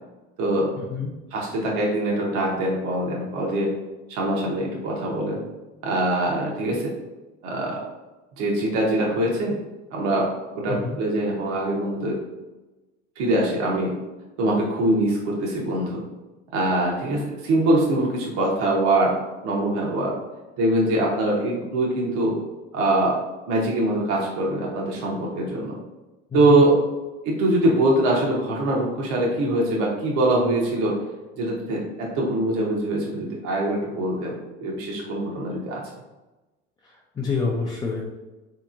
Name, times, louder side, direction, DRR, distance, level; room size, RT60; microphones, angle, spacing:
voice 1, 0.8-1.1 10.7-11.0 26.3-26.7 36.8-38.0, left 4 dB, 15° left, -3 dB, 0.3 m, -28 dB
voice 2, 1.3-3.7 4.1-5.4 5.8-6.9 7.4-7.8 8.4-9.5 9.9-10.3 10.5-12.2 13.2-13.9 14.4-16.0 16.5-19.1 19.4-20.1 20.6-22.4 22.7-23.1 23.5-25.7 26.3-26.8 27.2-31.0 31.4-35.8, right 1 dB, 65° right, -2 dB, 0.8 m, -23 dB
3.4 x 2.9 x 2.5 m, 1.1 s
supercardioid pair, 100°, 32 cm